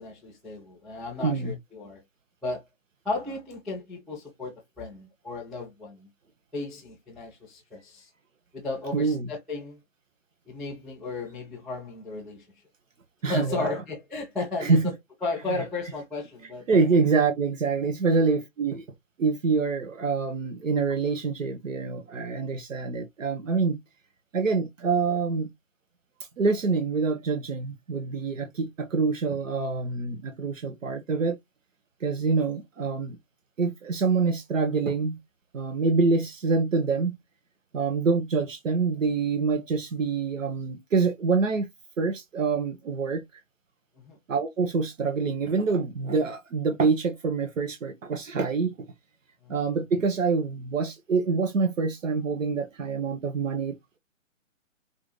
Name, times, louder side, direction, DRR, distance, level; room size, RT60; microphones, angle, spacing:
voice 1, 0.0-2.0 2.4-2.6 3.0-6.1 6.5-8.1 8.5-9.8 10.5-12.5 13.3-14.9 15.2-16.7 44.0-44.2 49.4-49.5, left 3 dB, ahead, 0.3 m, -34 dB
voice 2, 1.2-1.6 8.9-9.3 13.2-13.7 14.6-14.9 15.5-15.6 16.7-18.8 19.2-23.8 24.3-25.5 26.4-31.4 32.0-33.2 33.6-35.2 35.5-37.2 37.7-41.7 42.0-43.4 44.3-48.7 49.5-54.0, right 4 dB, 65° right, 1.2 m, -26 dB
5.9 x 2.7 x 3.1 m
hypercardioid pair, 145°, 41 cm